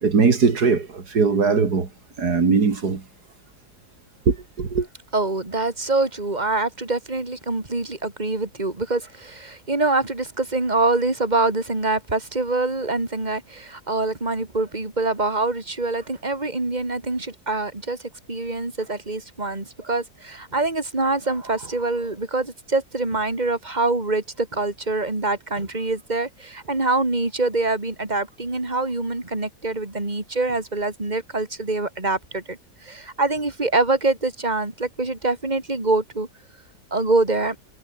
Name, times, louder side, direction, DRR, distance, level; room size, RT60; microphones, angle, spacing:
voice 1, 0.0-1.9 2.2-3.0 4.3-4.9, right 5 dB, 80° right, 3.1 m, -20 dB
voice 2, 5.1-36.3 36.9-37.6, right 2 dB, 25° right, 3.6 m, -25 dB
omnidirectional pair, 1.7 m